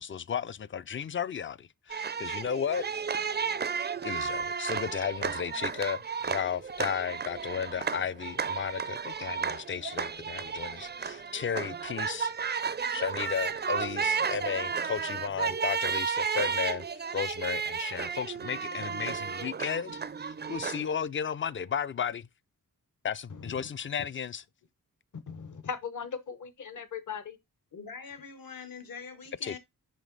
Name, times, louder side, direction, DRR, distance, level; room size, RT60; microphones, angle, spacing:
voice 1, 0.0-3.0 4.0-12.6 12.9-16.8 17.1-22.3 23.0-24.4 29.4-29.6, left 7 dB, 35° left, 0.4 m, -34 dB
sound 1, 1.9-21.0, right 6 dB, 30° right, 0.4 m, -33 dB
voice 2, 23.3-23.7 25.3-27.4, left 6 dB, 55° left, 0.9 m, -39 dB
voice 3, 27.7-29.6, left 5 dB, 70° left, 1.3 m, -43 dB
5.4 x 5.1 x 3.9 m
wide cardioid pair, 100°, 36 cm